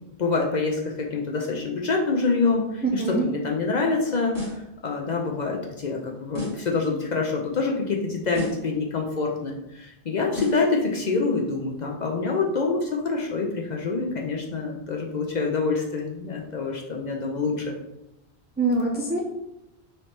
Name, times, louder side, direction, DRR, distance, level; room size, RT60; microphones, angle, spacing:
voice 1, 0.2-4.3 4.8-17.7, left 4 dB, 50° left, 0 dB, 0.6 m, -26 dB
voice 2, 2.8-3.2 18.6-19.2, right 3 dB, 15° right, -1 dB, 0.4 m, -24 dB
sound 1, 4.3-4.7 6.3-6.7 8.3-8.7 10.3-10.7, left 2 dB, 85° left, 1.8 m, -33 dB
3.3 x 3.0 x 4.2 m, 0.88 s
omnidirectional pair, 1.1 m